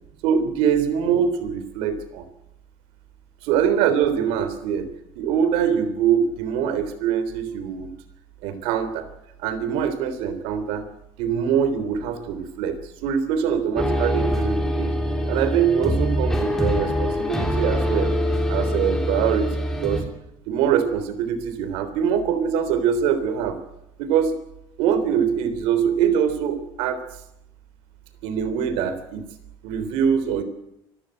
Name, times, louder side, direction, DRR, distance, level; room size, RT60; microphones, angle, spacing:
voice 1, 0.2-2.2 3.4-4.9 5.2-7.9 8.4-9.1 9.4-10.9 11.2-14.9 15.3-18.1 18.5-20.0 20.5-23.6 24.0-24.4 24.8-27.0 28.2-29.3 29.6-30.4, right 8 dB, 85° right, 12 dB, 3.5 m, -23 dB
sound 1, 13.8-20.0, equal, 5° left, 3.5 m, -24 dB
25.5 x 14.5 x 9.1 m, 0.83 s
cardioid pair, 170°, 10 cm